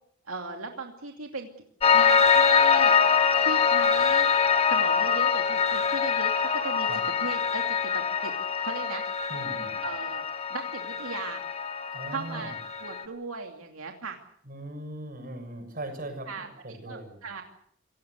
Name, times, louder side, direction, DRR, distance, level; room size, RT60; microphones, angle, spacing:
voice 1, 0.3-1.5 1.9-3.0 3.4-4.3 4.7-6.9 7.2-8.3 8.6-9.0 9.8-11.4 12.1-12.5 12.8-14.2 16.3-17.4, right 3 dB, 85° right, 3 dB, 2.7 m, -37 dB
Piano, 1.8-13.0, left 6 dB, 30° left, 1.9 m, -24 dB
voice 2, 9.3-9.8 11.9-12.5 14.5-17.2, right 1 dB, 45° right, 5 dB, 7.0 m, -39 dB
28.0 x 17.5 x 8.1 m, 0.67 s
head